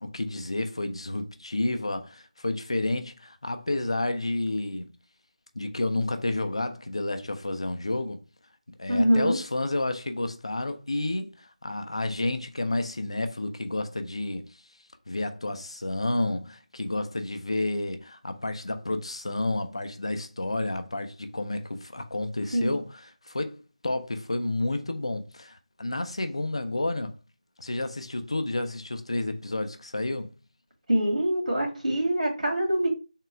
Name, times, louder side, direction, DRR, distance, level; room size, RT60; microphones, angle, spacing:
voice 1, 0.0-4.9 5.6-8.2 8.8-14.5 15.1-27.1 27.6-30.3, left 2 dB, 45° left, 0.5 m, -30 dB
voice 2, 8.9-9.4 22.5-22.8 30.9-32.9, equal, 75° right, 1.9 m, -24 dB
3.6 x 2.3 x 4.2 m
figure-of-eight pair, 175°, 4 cm